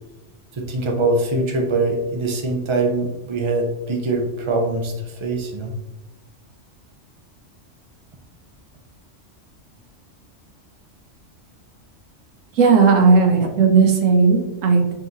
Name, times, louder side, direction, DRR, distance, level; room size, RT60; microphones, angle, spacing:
voice 1, 0.5-5.7, right 2 dB, 45° right, 2 dB, 0.4 m, -23 dB
voice 2, 12.6-14.9, right 4 dB, 85° right, 3 dB, 1.1 m, -15 dB
5.4 x 2.9 x 2.6 m, 1.0 s
omnidirectional pair, 1.3 m